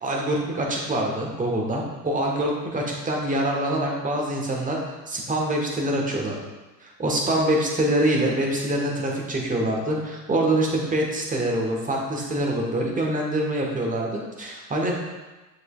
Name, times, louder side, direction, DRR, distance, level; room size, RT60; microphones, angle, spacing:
voice 1, 0.0-4.8 5.1-6.4 6.8-15.0, right 1 dB, 15° right, -1 dB, 1.5 m, -25 dB
7.9 x 6.4 x 2.5 m, 1.1 s
figure-of-eight pair, 80°, 49 cm